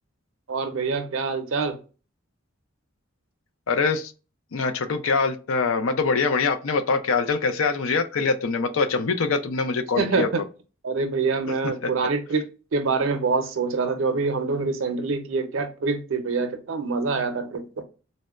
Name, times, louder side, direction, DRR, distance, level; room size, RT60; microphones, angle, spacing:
voice 1, 0.5-1.8 10.0-10.4 10.8-12.5 12.7-17.7, right 4 dB, 75° right, 0.6 m, -25 dB
voice 2, 3.7-4.1 4.5-10.3 11.8-11.9, left 4 dB, 85° left, 0.5 m, -24 dB
4.0 x 2.1 x 2.3 m
head